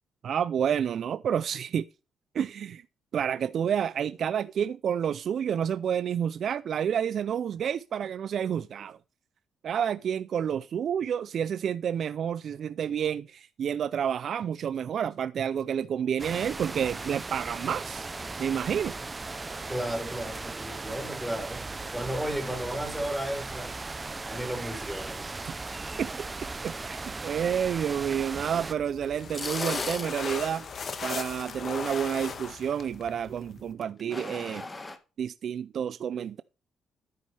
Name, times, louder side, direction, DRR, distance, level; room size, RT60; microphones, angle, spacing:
voice 1, 0.2-1.9 2.3-2.8 3.1-9.0 9.6-18.1 18.4-18.9 25.4-25.5 26.0-26.1 26.6-27.0 27.2-30.7 31.0-34.7 35.2-36.4, right 8 dB, 60° right, 0.4 m, -29 dB
sound 1, 16.2-28.7, right 3 dB, 25° right, 0.7 m, -37 dB
voice 2, 19.7-21.6 21.9-23.7 24.2-25.2, right 1 dB, ahead, 3.9 m, -34 dB
sound 2, 28.7-33.7, left 5 dB, 45° left, 1.5 m, -37 dB
sound 3, 29.0-30.5 33.8-35.0, left 2 dB, 25° left, 1.5 m, -38 dB
10.5 x 9.4 x 3.4 m
cardioid pair, 90°, 0 cm